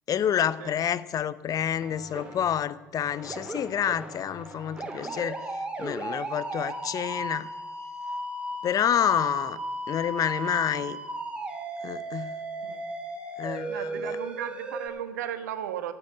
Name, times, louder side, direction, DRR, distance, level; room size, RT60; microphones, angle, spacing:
voice 1, 0.1-5.4 5.8-7.5 8.6-9.6 9.9-11.0 11.8-12.4 13.4-14.2, left 9 dB, 40° left, 17 dB, 0.7 m, -28 dB
sound 1, 1.8-2.6 3.0-14.9, right 1 dB, 10° right, 4.0 m, -36 dB
voice 2, 13.7-15.9, right 10 dB, 75° right, 11 dB, 1.2 m, -35 dB
14.0 x 9.1 x 9.2 m, 1.1 s
figure-of-eight pair, 60°, 9 cm